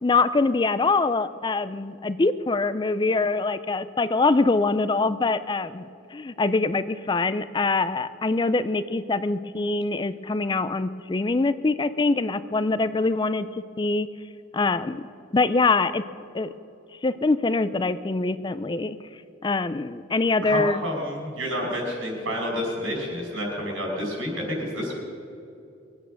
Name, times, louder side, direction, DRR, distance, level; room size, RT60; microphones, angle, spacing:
voice 1, 0.0-13.5 13.8-14.1 14.5-15.0 15.3-16.0 16.3-16.5 17.0-19.0 19.4-20.8, left 3 dB, 25° left, 13 dB, 0.4 m, -24 dB
voice 2, 20.4-25.0, equal, 85° right, 0 dB, 4.9 m, -29 dB
22.5 x 9.1 x 6.4 m, 2.6 s
head